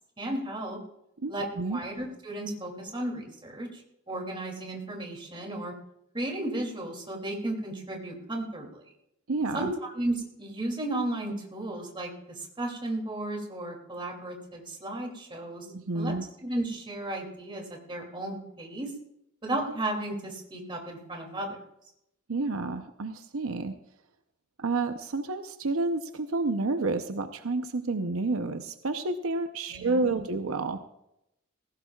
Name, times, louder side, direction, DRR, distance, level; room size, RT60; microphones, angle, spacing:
voice 1, 0.2-0.8 1.3-5.7 6.1-8.8 9.5-15.7 15.9-18.9 19.4-21.6 29.7-30.2, right 1 dB, 25° right, 1 dB, 2.6 m, -34 dB
voice 2, 1.2-1.8 9.3-9.7 15.7-16.2 22.3-23.7 24.6-30.8, right 3 dB, 80° right, 7 dB, 0.7 m, -30 dB
19.0 x 16.5 x 2.4 m, 0.83 s
head